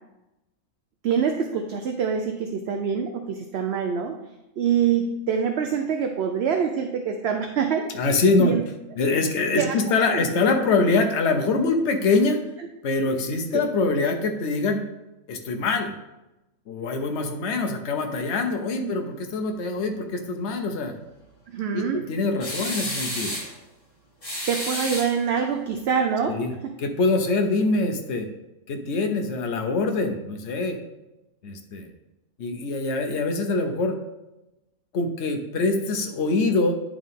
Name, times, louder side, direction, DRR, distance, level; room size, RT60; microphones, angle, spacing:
voice 1, 1.0-4.2 4.6-7.9 8.4-8.6 9.6-9.8 10.1-10.3 18.8-18.9 21.5-22.0 24.5-26.4 26.6-26.7, right 7 dB, 60° right, 4 dB, 0.7 m, -25 dB
voice 2, 7.9-8.6 9.0-12.4 12.8-14.8 15.3-15.9 16.7-21.0 21.7-23.4 26.3-26.5 26.8-28.3 28.7-30.8 31.4-31.9 32.4-34.0 34.9-36.8, left 3 dB, 55° left, 4 dB, 1.1 m, -24 dB
sound 1, 22.4-23.5 24.2-25.5, left 1 dB, 30° left, 2.4 m, -31 dB
10.5 x 3.6 x 3.7 m, 0.95 s
omnidirectional pair, 1.5 m